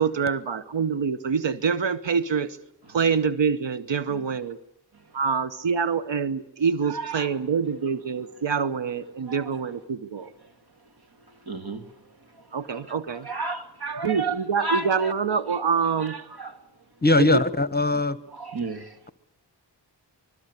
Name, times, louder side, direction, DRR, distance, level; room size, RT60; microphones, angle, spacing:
voice 1, 0.0-2.6 2.9-4.6 5.1-10.3 12.5-13.3 14.0-16.1 17.2-17.4, right 6 dB, 75° right, 1.0 m, -25 dB
voice 2, 6.8-7.4 9.3-9.6 10.4-10.5 11.3-15.4 15.7-16.6 18.3-19.1, right 3 dB, 55° right, 2.3 m, -34 dB
voice 3, 17.0-18.2, left 2 dB, 20° left, 1.1 m, -20 dB
25.0 x 21.0 x 8.1 m
cardioid pair, 45°, 45 cm